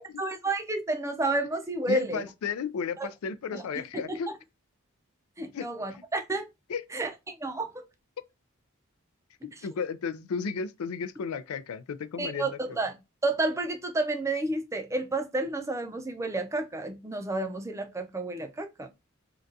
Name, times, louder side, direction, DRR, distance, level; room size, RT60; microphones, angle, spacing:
voice 1, 0.2-2.2 3.0-3.1 3.5-3.6 3.9-4.2 5.4-6.4 6.9-7.8 12.2-13.0 13.2-18.9, right 2 dB, 15° right, 0.4 m, -30 dB
voice 2, 1.9-4.3 5.5-5.7 6.7-6.8 9.4-12.8, left 6 dB, 85° left, 0.4 m, -34 dB
3.8 x 2.3 x 2.5 m
head